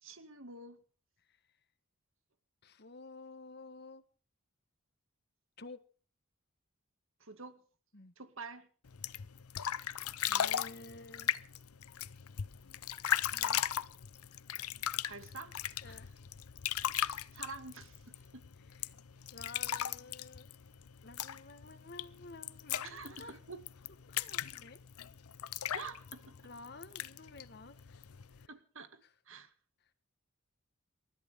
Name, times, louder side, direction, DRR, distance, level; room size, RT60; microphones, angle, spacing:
voice 1, 0.0-0.8 7.2-7.6 8.2-8.7 15.0-15.6 15.9-16.0 17.0-18.5 22.8-23.6 25.7-26.3 28.5-29.0 29.3-29.5, right 4 dB, 65° right, 2.3 m, -48 dB
voice 2, 2.6-4.0 5.6-5.8 7.9-8.1 10.2-11.3 13.3-13.6 14.6-14.7 15.8-16.1 18.7-18.9 19.3-20.5 21.0-23.4 24.0-24.8 26.4-28.0 28.3-28.5 29.0-29.1, left 3 dB, 50° left, 1.5 m, -51 dB
sound 1, 8.9-28.5, left 10 dB, 85° left, 0.7 m, -38 dB
28.0 x 14.0 x 3.7 m
head